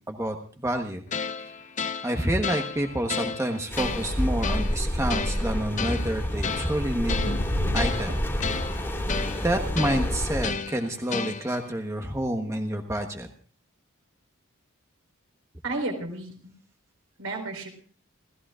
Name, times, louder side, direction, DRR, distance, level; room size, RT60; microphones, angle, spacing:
voice 1, 0.6-1.0 2.0-7.3 7.7-8.2 9.4-13.3, right 1 dB, 15° right, 3 dB, 1.2 m, -28 dB
sound 1, 1.1-11.7, left 5 dB, 35° left, 0.7 m, -33 dB
sound 2, 3.7-10.5, equal, 10° left, 2.6 m, -29 dB
sound 3, 7.1-10.7, left 1 dB, 90° left, 1.3 m, -34 dB
voice 2, 15.6-16.5 17.2-17.7, right 2 dB, 75° right, 3 dB, 4.6 m, -32 dB
30.0 x 14.5 x 2.5 m, 0.42 s
head